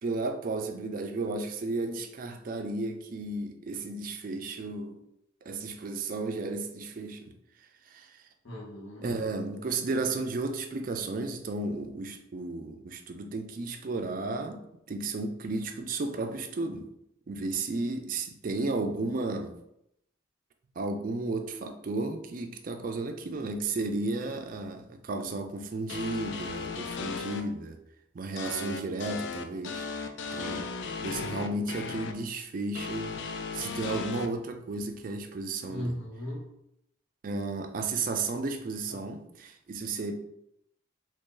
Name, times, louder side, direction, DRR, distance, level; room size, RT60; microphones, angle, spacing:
voice 1, 0.0-5.0 5.4-7.3 7.9-8.2 9.0-14.6 14.9-16.9 17.3-19.5 20.8-27.8 28.1-29.9 30.3-30.6 31.0-33.2 33.5-36.0 37.2-40.1, right 3 dB, 45° right, 6 dB, 0.3 m, -33 dB
voice 2, 8.4-9.1 35.6-36.5 38.9-39.0, equal, 75° left, -5 dB, 1.3 m, -37 dB
sound 1, 25.9-27.4 28.4-32.1 32.8-34.3, left 4 dB, 60° left, 0.3 m, -36 dB
2.9 x 2.7 x 3.7 m, 0.79 s
head